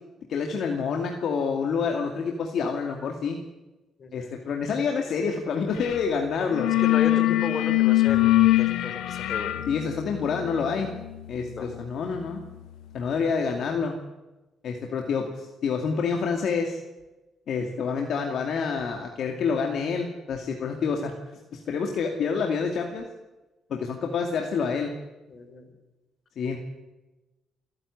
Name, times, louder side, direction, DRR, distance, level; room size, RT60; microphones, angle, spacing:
voice 1, 0.3-3.4 4.1-6.7 9.7-10.9 11.3-12.4 12.9-14.0 14.6-16.8 17.5-21.1 21.5-23.0 23.7-24.9 26.4-26.6, left 5 dB, 65° left, 3 dB, 2.4 m, -27 dB
voice 2, 4.0-4.3 6.8-9.5 11.5-11.6 25.3-25.7, left 4 dB, 50° left, 7 dB, 4.6 m, -33 dB
sound 1, 5.8-6.0 6.3-13.0, left 16 dB, 85° left, 1.0 m, -24 dB
28.5 x 10.5 x 9.8 m, 1.1 s
cardioid pair, 90°, 0 cm